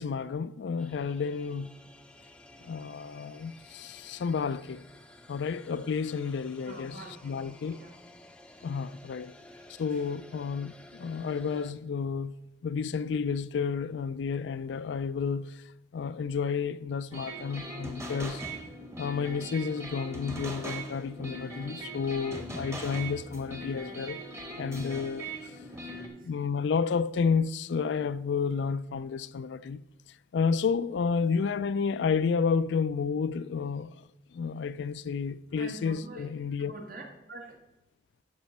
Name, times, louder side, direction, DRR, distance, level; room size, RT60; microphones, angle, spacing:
voice 1, 0.0-1.7 2.6-4.8 5.3-7.0 7.2-7.8 8.6-9.3 9.8-12.3 12.6-15.6 15.9-18.4 19.0-24.2 24.6-25.5 26.2-29.8 30.3-33.9 34.3-36.7, left 5 dB, 75° left, 0.3 m, -31 dB
sound 1, 0.8-11.7, left 1 dB, 5° left, 0.6 m, -53 dB
voice 2, 6.6-8.0 8.6-9.1 9.5-10.1 25.7-26.3 35.5-36.3 36.6-37.6, right 2 dB, 50° right, 1.5 m, -47 dB
sound 2, 17.1-26.1, right 1 dB, 15° right, 1.2 m, -40 dB
13.5 x 5.5 x 4.2 m
head